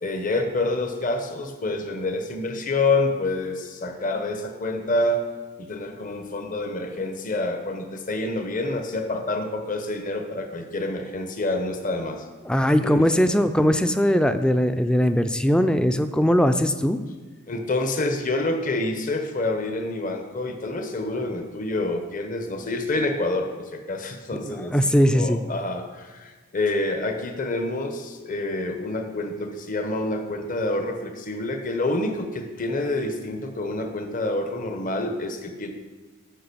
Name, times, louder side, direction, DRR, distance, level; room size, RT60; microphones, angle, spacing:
voice 1, 0.0-5.2 5.6-12.3 12.8-13.4 17.5-35.7, left 2 dB, 40° left, 5 dB, 1.0 m, -27 dB
voice 2, 12.5-17.0 24.4-25.4, equal, 5° left, 10 dB, 0.4 m, -20 dB
8.9 x 5.6 x 6.9 m, 1.4 s
head